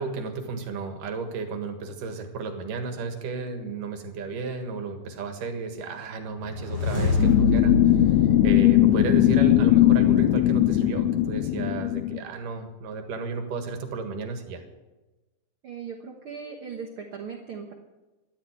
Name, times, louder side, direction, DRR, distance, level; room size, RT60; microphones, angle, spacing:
voice 1, 0.0-8.2 8.4-14.6, right 4 dB, 80° right, 6 dB, 3.3 m, -33 dB
sound 1, 6.3-9.6, left 2 dB, 35° left, 6.5 m, -28 dB
sound 2, 7.2-12.2, left 13 dB, 75° left, 1.7 m, -19 dB
voice 2, 15.6-17.7, right 6 dB, 55° right, 3 dB, 1.6 m, -38 dB
13.5 x 11.5 x 8.2 m, 1.1 s
omnidirectional pair, 3.7 m